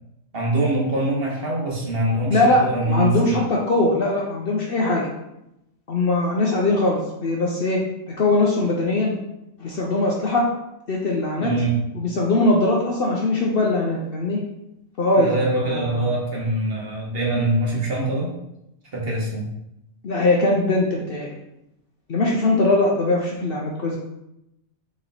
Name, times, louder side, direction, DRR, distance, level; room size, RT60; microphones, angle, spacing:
voice 1, 0.3-3.3 11.4-11.8 15.2-18.3 18.9-19.5, right 2 dB, 50° right, -2 dB, 1.1 m, -23 dB
voice 2, 2.3-5.1 5.9-7.8 8.1-9.1 9.6-10.5 10.9-11.5 12.0-14.4 15.0-15.4 15.6-16.1 20.0-21.3 22.1-24.0, left 2 dB, 55° left, -2 dB, 0.7 m, -21 dB
4.2 x 3.0 x 3.9 m, 0.86 s
omnidirectional pair, 1.4 m